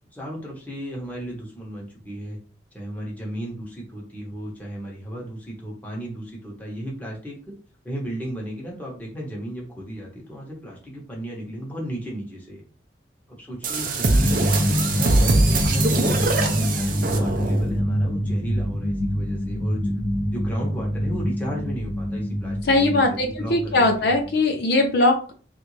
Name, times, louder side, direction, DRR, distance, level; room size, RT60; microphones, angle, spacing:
voice 1, 0.1-2.4 2.7-7.4 7.8-12.6 13.3-19.9 20.3-24.1, right 1 dB, 10° left, -3 dB, 1.0 m, -34 dB
sound 1, 13.6-17.8, right 2 dB, 50° right, 0.5 m, -23 dB
sound 2, 14.2-24.4, equal, 30° right, 1.0 m, -26 dB
voice 2, 22.7-25.3, left 2 dB, 60° left, 3 dB, 0.5 m, -20 dB
3.3 x 2.5 x 3.2 m, 0.39 s
head